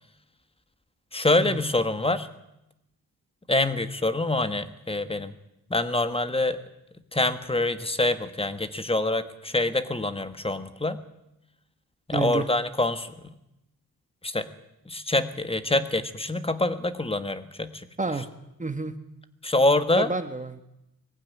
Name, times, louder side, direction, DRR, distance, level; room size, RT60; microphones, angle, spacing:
voice 1, 1.1-2.3 3.5-5.3 5.7-6.6 7.1-11.0 12.1-13.2 14.2-14.5 14.9-17.8 19.4-20.1, left 2 dB, 15° left, 11 dB, 1.5 m, -25 dB
voice 2, 12.1-12.5 18.0-18.3 18.6-18.9 20.0-20.6, right 3 dB, 20° right, 9 dB, 1.4 m, -29 dB
20.5 x 15.0 x 9.6 m, 0.87 s
cardioid pair, 95°, 37 cm